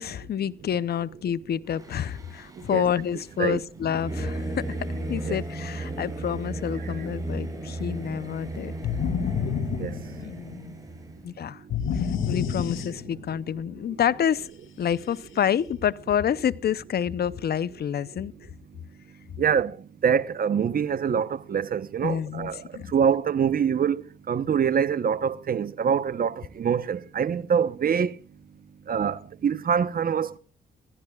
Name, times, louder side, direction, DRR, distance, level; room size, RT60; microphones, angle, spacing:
voice 1, 0.0-4.8 5.1-8.7 10.2-10.8 11.2-11.6 11.9-14.5 14.8-18.3 22.0-22.9, left 9 dB, 50° left, 0.7 m, -28 dB
Singing / Musical instrument, 1.7-11.3, right 2 dB, 15° right, 7.0 m, -35 dB
sound 1, 8.8-10.6 11.7-13.4, left 7 dB, 80° left, 2.4 m, -28 dB
voice 2, 19.4-19.8 20.0-22.6 22.9-24.0 24.3-28.1 28.9-30.4, right 7 dB, 45° right, 0.9 m, -25 dB
25.5 x 15.5 x 2.4 m
cardioid pair, 90°, 20 cm